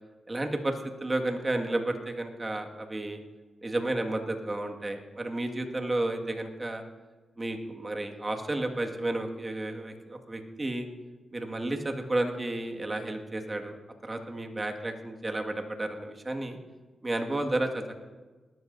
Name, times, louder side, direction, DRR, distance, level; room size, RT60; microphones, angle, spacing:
voice 1, 0.3-3.2 3.6-6.8 7.4-10.9 11.3-16.6 17.0-18.0, right 2 dB, 30° right, 3 dB, 1.9 m, -32 dB
19.5 x 13.5 x 2.7 m, 1.3 s
supercardioid pair, 45°, 0 cm